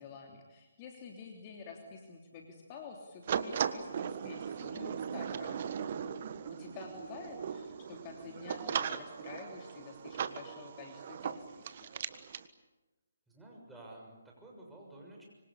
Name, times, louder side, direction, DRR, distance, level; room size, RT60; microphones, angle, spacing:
voice 1, 0.0-5.7 6.6-11.9, left 5 dB, 30° left, 2 dB, 3.1 m, -49 dB
sound 1, 3.3-12.5, right 7 dB, 40° right, 1.5 m, -38 dB
voice 2, 13.3-15.2, right 1 dB, 5° right, -3 dB, 6.8 m, -52 dB
25.5 x 25.5 x 8.5 m, 1.1 s
figure-of-eight pair, 145°, 0 cm